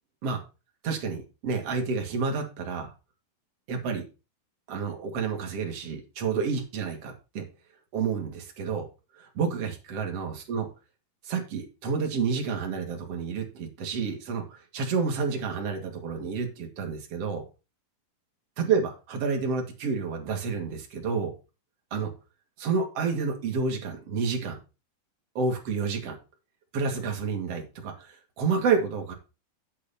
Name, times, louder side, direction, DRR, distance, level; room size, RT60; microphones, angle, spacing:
voice 1, 0.8-2.9 3.7-4.0 4.7-7.4 7.9-8.9 9.2-10.7 11.2-17.4 18.6-21.3 21.9-22.1 22.6-24.6 25.3-26.2 26.7-29.1, right 5 dB, 45° right, 3 dB, 3.0 m, -29 dB
8.9 x 8.5 x 4.3 m, 0.30 s
omnidirectional pair, 4.6 m